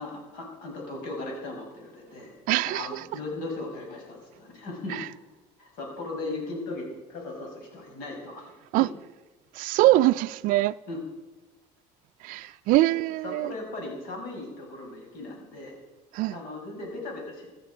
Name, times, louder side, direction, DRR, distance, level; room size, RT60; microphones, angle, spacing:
voice 1, 0.0-2.3 2.6-5.0 5.6-8.9 10.9-11.0 12.3-12.5 12.9-13.0 13.2-15.8 16.3-17.5, left 2 dB, 75° left, 5.6 m, -37 dB
voice 2, 2.5-3.0 4.9-5.1 8.7-8.9 9.5-10.7 12.2-13.5 16.1-16.4, right 17 dB, 65° right, 0.4 m, -23 dB
15.0 x 13.0 x 5.0 m
cardioid pair, 130°, 15 cm